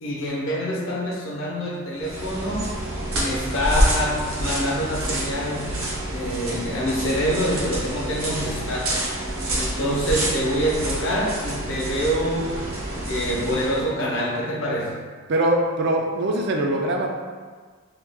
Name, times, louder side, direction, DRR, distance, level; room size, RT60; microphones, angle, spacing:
voice 1, 0.0-2.8 3.1-5.8 6.1-9.0 9.5-12.6 13.1-14.9, equal, 65° left, -4 dB, 0.7 m, -26 dB
sound 1, 2.0-13.9, right 1 dB, 75° right, 0.8 m, -28 dB
voice 2, 15.3-17.1, right 1 dB, 55° right, 1 dB, 0.4 m, -22 dB
3.0 x 2.3 x 3.4 m, 1.5 s
head